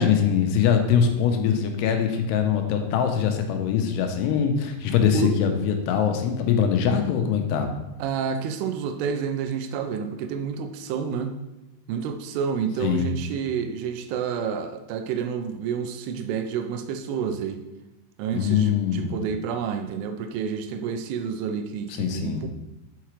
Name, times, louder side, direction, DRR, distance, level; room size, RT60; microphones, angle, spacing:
voice 1, 0.0-7.7 12.8-13.1 18.3-19.1 22.0-22.4, left 7 dB, 85° left, 5 dB, 2.7 m, -22 dB
voice 2, 8.0-11.4 11.9-17.6 18.2-22.5, right 7 dB, 85° right, 7 dB, 2.6 m, -29 dB
5.7 x 5.7 x 3.1 m, 0.96 s
omnidirectional pair, 4.8 m